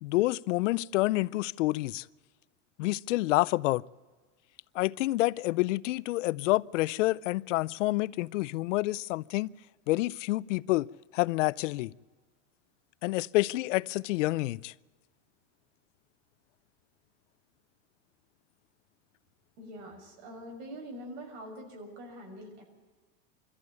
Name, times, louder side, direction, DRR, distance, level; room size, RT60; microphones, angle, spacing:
voice 1, 0.0-2.0 2.8-3.8 4.7-9.5 9.9-10.9 11.1-11.9 13.0-14.7, left 19 dB, 80° left, 0.6 m, -28 dB
voice 2, 19.6-22.6, equal, 60° right, 6.4 m, -44 dB
23.5 x 14.0 x 9.5 m
supercardioid pair, 145°, 37 cm